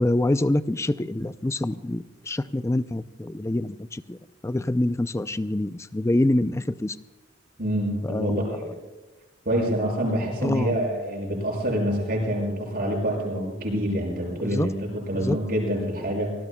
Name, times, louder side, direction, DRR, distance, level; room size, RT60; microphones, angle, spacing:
voice 1, 0.0-4.2 4.4-7.0 8.0-8.5 10.4-10.7 14.4-14.7 15.1-15.4, left 1 dB, 15° left, 13 dB, 0.4 m, -25 dB
voice 2, 7.6-8.7 9.4-16.3, equal, 50° right, -1 dB, 6.8 m, -26 dB
25.5 x 19.5 x 2.3 m, 1.2 s
head